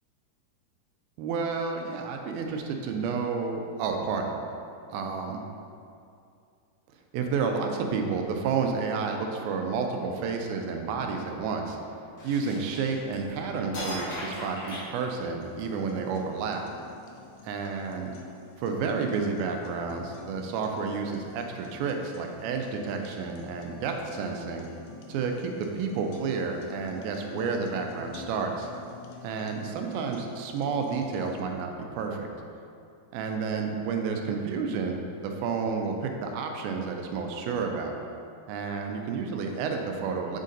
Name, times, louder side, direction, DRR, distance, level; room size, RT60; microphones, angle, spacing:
voice 1, 1.2-4.4 4.9-5.4 7.1-11.8 12.2-16.6 17.4-18.1 18.6-24.7 25.1-28.7 29.2-32.3 33.1-38.0 38.5-40.4, right 5 dB, 80° right, 3 dB, 2.3 m, -30 dB
sound 1, 12.2-13.3 13.7-15.6, left 1 dB, 65° left, 0.9 m, -37 dB
sound 2, 15.4-31.4, left 4 dB, 85° left, 2.5 m, -48 dB
7.3 x 3.9 x 3.9 m, 2.5 s
omnidirectional pair, 4.5 m